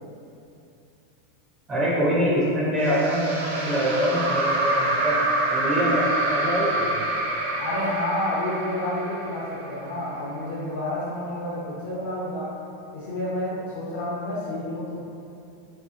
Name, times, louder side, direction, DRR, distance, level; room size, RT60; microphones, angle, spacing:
voice 1, 1.7-5.2 5.5-6.9, equal, 15° right, -7 dB, 0.4 m, -24 dB
sound 1, 2.8-10.1, right 2 dB, 75° right, 0.5 m, -27 dB
voice 2, 7.6-12.5 12.9-15.0, left 1 dB, 65° left, -8 dB, 0.5 m, -29 dB
3.1 x 2.8 x 2.3 m, 2.6 s
supercardioid pair, 170°, 0 cm